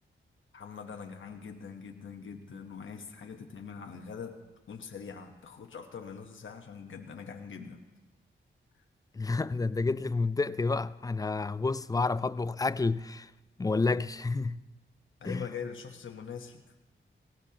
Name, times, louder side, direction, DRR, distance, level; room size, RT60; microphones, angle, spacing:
voice 1, 0.5-4.4 4.7-7.8 15.2-16.6, left 6 dB, 70° left, 1.0 m, -43 dB
voice 2, 9.1-13.3 13.6-14.6 15.2-15.4, left 3 dB, 20° left, 0.3 m, -29 dB
18.5 x 16.5 x 2.8 m
cardioid pair, 75°, 21 cm